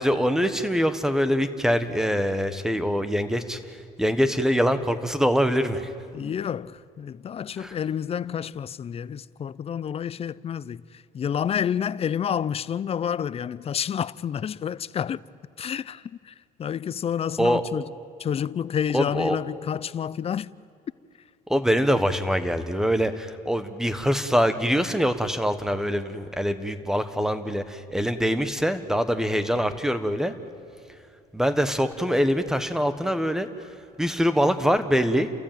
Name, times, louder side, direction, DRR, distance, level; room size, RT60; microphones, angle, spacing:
voice 1, 0.0-5.9 7.6-7.7 17.4-17.6 18.9-19.4 21.5-30.3 31.3-33.5 34.0-35.3, equal, 5° right, 1.3 m, -24 dB
voice 2, 6.1-15.2 15.6-17.9 18.2-20.5, left 8 dB, 35° left, 0.5 m, -29 dB
29.5 x 14.5 x 9.2 m
cardioid pair, 110°, 17 cm